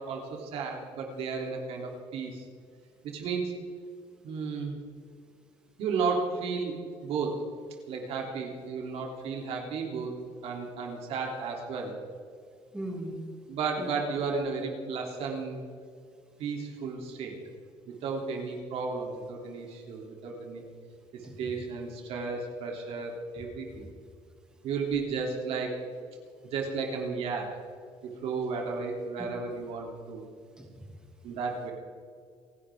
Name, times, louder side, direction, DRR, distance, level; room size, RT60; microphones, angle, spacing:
voice 1, 0.0-2.4 3.0-3.5 4.2-4.8 5.8-6.7 7.0-7.3 7.9-10.2 10.4-11.9 13.5-15.6 16.4-17.4 18.0-20.6 21.1-23.8 24.6-25.8 26.4-27.5 28.0-30.2 31.2-31.7, right 4 dB, 65° right, 0 dB, 3.3 m, -33 dB
voice 2, 12.7-13.3 13.8-13.9 21.2-21.5 29.2-29.3 30.6-30.9, right 1 dB, 10° right, -1 dB, 2.6 m, -39 dB
28.5 x 11.0 x 3.8 m, 2.2 s
cardioid pair, 135°, 11 cm